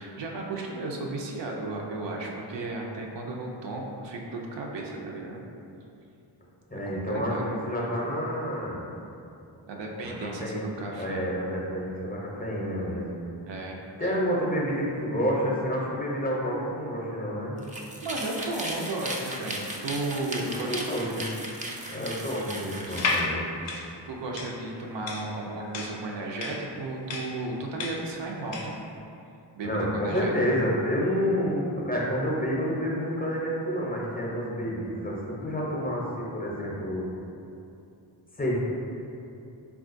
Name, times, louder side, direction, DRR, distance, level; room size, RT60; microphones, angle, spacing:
voice 1, 0.0-5.4 6.9-7.4 9.7-11.2 13.5-14.2 18.0-20.9 21.7-22.0 24.1-28.7 29.6-30.3, right 2 dB, 70° right, -1 dB, 0.5 m, -34 dB
voice 2, 6.7-8.8 10.0-10.6 10.9-13.1 14.0-17.6 20.3-21.3 21.9-23.5 29.6-37.1 38.4-38.6, equal, 20° left, -5 dB, 0.6 m, -29 dB
sound 1, 17.6-23.2, right 1 dB, 20° right, 0.3 m, -36 dB
sound 2, 22.9-28.8, left 3 dB, 70° left, 0.5 m, -32 dB
3.6 x 2.3 x 2.5 m, 2.7 s
cardioid pair, 50°, 46 cm